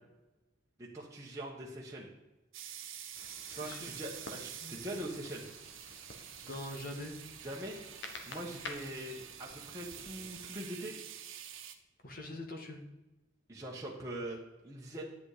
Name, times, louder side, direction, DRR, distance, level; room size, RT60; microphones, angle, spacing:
voice 1, 0.8-2.1 3.5-5.4 7.4-7.8 8.3-10.9 13.5-14.4 14.6-15.0, right 1 dB, 15° right, -4 dB, 1.4 m, -42 dB
sound 1, 2.5-11.7, right 10 dB, 80° right, 1.2 m, -48 dB
sound 2, 3.1-10.5, left 3 dB, 60° left, 1.6 m, -51 dB
voice 2, 3.4-4.0 4.6-5.0 6.4-7.2 12.0-12.8, left 1 dB, 45° left, 2 dB, 1.7 m, -44 dB
11.0 x 8.3 x 5.1 m, 1.0 s
head